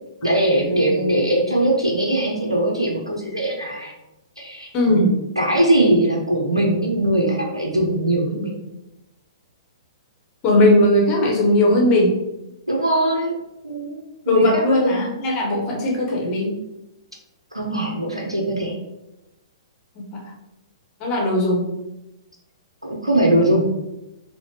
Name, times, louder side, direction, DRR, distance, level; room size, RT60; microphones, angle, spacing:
voice 1, 0.2-3.9 4.4-5.1 5.4-8.5 12.7-13.4 13.6-14.0 14.3-15.1 17.5-18.8 22.8-23.7, right 1 dB, 85° right, -1 dB, 0.6 m, -21 dB
voice 2, 4.7-5.3 10.4-12.2 14.3-16.5 20.0-20.3 21.0-21.7, left 1 dB, 30° left, -2 dB, 0.9 m, -18 dB
4.2 x 2.1 x 2.8 m, 0.93 s
figure-of-eight pair, 115°, 3 cm